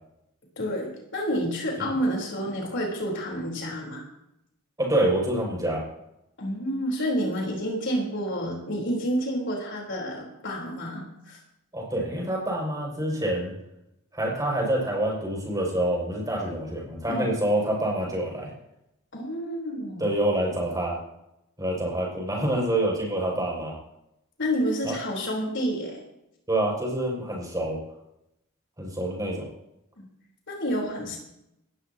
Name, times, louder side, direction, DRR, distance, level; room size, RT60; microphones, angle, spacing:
voice 1, 0.6-4.0 6.4-11.4 17.1-17.3 19.1-20.1 24.4-26.0 30.0-30.1 30.5-31.2, equal, 55° left, -1 dB, 4.1 m, -29 dB
voice 2, 4.8-5.8 11.7-13.5 14.1-18.5 20.0-21.0 21.6-23.7 24.8-25.0 26.5-27.8 28.8-29.5, right 1 dB, 15° right, -2 dB, 6.3 m, -26 dB
19.0 x 14.0 x 3.0 m, 0.82 s
head